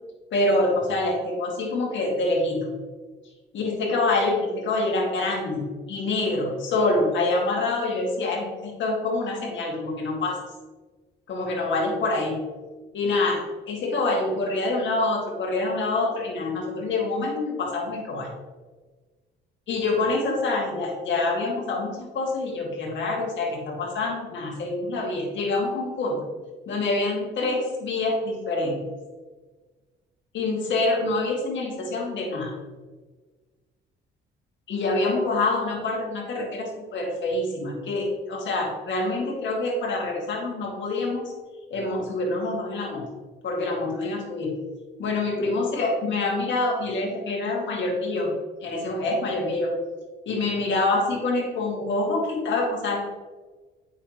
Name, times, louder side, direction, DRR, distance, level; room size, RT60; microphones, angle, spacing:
voice 1, 0.3-2.7 3.5-10.4 11.3-12.4 12.9-13.4 13.7-18.3 19.7-26.3 26.7-28.8 30.3-32.5 34.7-41.2 41.7-43.0 43.4-44.5 45.0-48.3 48.6-49.7 50.3-53.0, left 2 dB, 70° left, -1 dB, 2.2 m, -26 dB
8.2 x 6.1 x 3.0 m, 1.3 s
cardioid pair, 90°, 20 cm